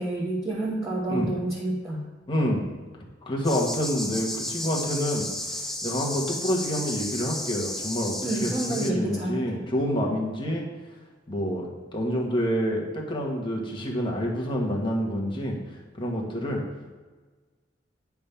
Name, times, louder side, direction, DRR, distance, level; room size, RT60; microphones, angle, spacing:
voice 1, 0.0-2.1 8.2-9.4, right 2 dB, 20° right, -7 dB, 1.2 m, -29 dB
voice 2, 2.3-2.7 3.3-8.1 8.4-10.7 11.3-15.6 16.0-16.6, equal, 25° left, -2 dB, 1.3 m, -28 dB
sound 1, 3.4-8.9, left 1 dB, ahead, 0.5 m, -33 dB
9.7 x 3.6 x 5.6 m, 1.3 s
head